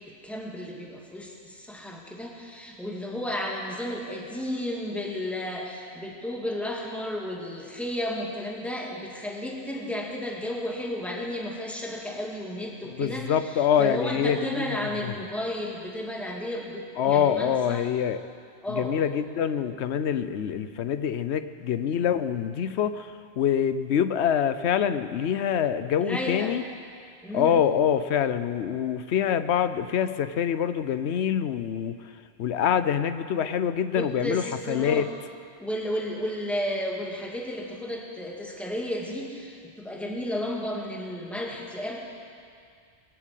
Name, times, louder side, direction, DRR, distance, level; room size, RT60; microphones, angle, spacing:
voice 1, 0.2-13.3 13.8-17.8 18.6-18.9 26.0-26.5 27.2-27.6 33.9-35.0 35.6-42.0, left 1 dB, ahead, -2 dB, 2.0 m, -33 dB
voice 2, 12.9-14.7 15.0-15.2 17.0-18.2 18.7-26.6 27.3-31.9 32.4-35.1, left 8 dB, 85° left, 12 dB, 1.0 m, -25 dB
21.5 x 7.3 x 8.3 m, 2.2 s
omnidirectional pair, 1.1 m